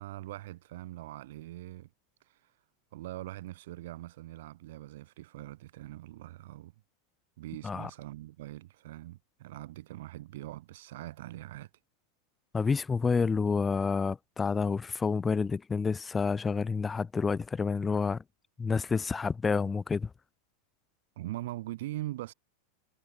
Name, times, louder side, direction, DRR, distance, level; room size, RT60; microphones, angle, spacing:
voice 1, 0.0-1.9 2.3-2.5 2.9-6.7 7.4-11.7 21.2-22.3, right 16 dB, 70° right, 2.6 m, -42 dB
voice 2, 12.5-18.2 18.6-20.1, left 5 dB, 15° left, 0.6 m, -29 dB
hypercardioid pair, 110°, 0 cm